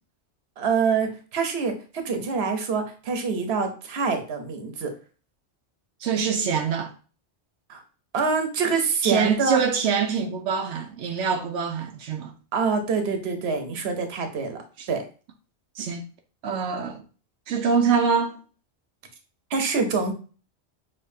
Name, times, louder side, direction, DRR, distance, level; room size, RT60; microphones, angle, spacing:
voice 1, 0.6-4.9 7.7-7.8 8.1-9.6 12.5-14.6 14.9-15.0 19.5-20.1, right 5 dB, 65° right, 1.1 m, -25 dB
voice 2, 6.0-6.9 9.0-12.3 14.8-14.9 15.8-16.0 16.4-17.0 17.5-18.4, right 6 dB, 90° right, 1.0 m, -24 dB
6.6 x 3.0 x 2.7 m
omnidirectional pair, 1.2 m